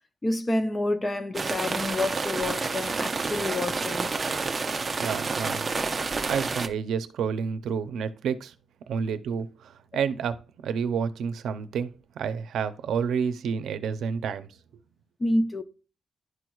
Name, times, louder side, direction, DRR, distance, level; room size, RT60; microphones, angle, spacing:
voice 1, 0.2-4.1 15.2-15.6, left 1 dB, 20° left, 0.6 m, -28 dB
sound 1, 1.3-6.7, right 4 dB, 25° right, 0.6 m, -29 dB
voice 2, 5.0-5.7 6.3-8.5 8.9-14.5, right 6 dB, 85° right, 0.6 m, -30 dB
11.0 x 4.6 x 2.3 m
wide cardioid pair, 145°, 0 cm